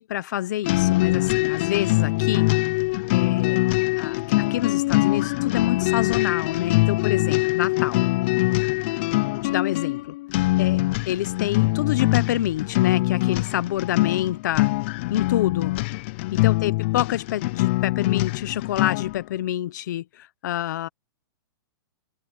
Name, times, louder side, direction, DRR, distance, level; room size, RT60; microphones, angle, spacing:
voice 1, 0.0-2.5 3.1-3.6 4.0-8.1 9.4-10.1 10.6-14.7 15.1-15.7 16.4-20.9, left 13 dB, 50° left, 0.8 m, -27 dB
sound 1, 0.6-19.2, left 21 dB, 30° left, 0.3 m, -23 dB
hypercardioid pair, 165°, 12 cm